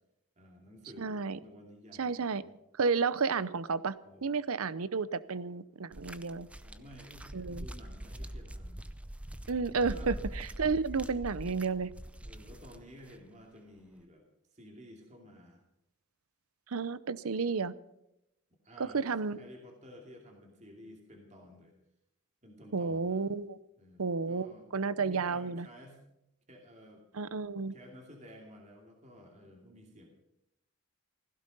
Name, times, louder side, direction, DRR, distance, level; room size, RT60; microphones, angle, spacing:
voice 1, 0.4-2.5 4.0-4.3 6.6-8.8 9.9-10.1 12.2-14.2 14.5-15.6 18.6-19.1 19.3-21.7 22.4-23.2 23.8-24.7 25.0-26.0 26.5-27.0 27.7-30.1, equal, 30° right, 1 dB, 2.6 m, -53 dB
voice 2, 1.0-1.4 2.0-2.4 2.8-3.9 4.2-6.5 7.3-7.7 9.5-11.9 16.7-17.7 18.8-19.4 22.7-23.6 24.0-24.5 24.7-25.7 27.1-27.7, right 4 dB, 75° right, 17 dB, 0.7 m, -31 dB
sound 1, 5.9-13.2 14.0-14.1, right 1 dB, 5° right, 0.5 m, -43 dB
16.0 x 15.5 x 5.4 m, 0.83 s
head